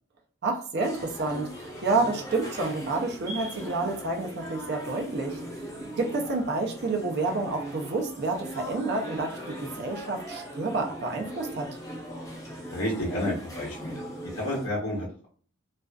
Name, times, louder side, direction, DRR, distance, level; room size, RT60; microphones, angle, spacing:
voice 1, 0.4-5.4 6.0-11.7, right 3 dB, 50° right, 2 dB, 0.5 m, -29 dB
sound 1, 0.8-14.7, right 1 dB, 15° left, 0.7 m, -39 dB
voice 2, 12.7-14.0 14.3-15.3, left 1 dB, 75° left, -6 dB, 0.9 m, -30 dB
2.4 x 2.3 x 2.2 m, 0.43 s
head